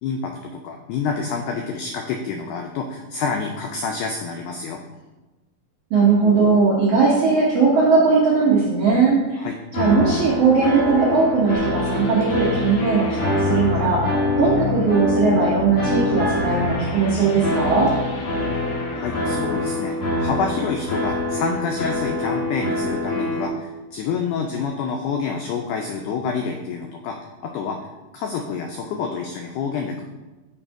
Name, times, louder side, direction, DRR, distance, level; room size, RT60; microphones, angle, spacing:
voice 1, 0.0-4.8 9.4-9.5 19.0-27.2 27.4-27.8 28.1-30.0, left 5 dB, 85° left, 3 dB, 1.8 m, -28 dB
voice 2, 5.9-9.5 9.7-17.9, right 4 dB, 75° right, -5 dB, 1.3 m, -19 dB
sound 1, 9.7-23.5, left 2 dB, 50° left, 1.9 m, -25 dB
sound 2, 11.5-20.6, left 3 dB, 70° left, 2.1 m, -31 dB
6.4 x 3.5 x 4.5 m, 1.1 s
omnidirectional pair, 4.1 m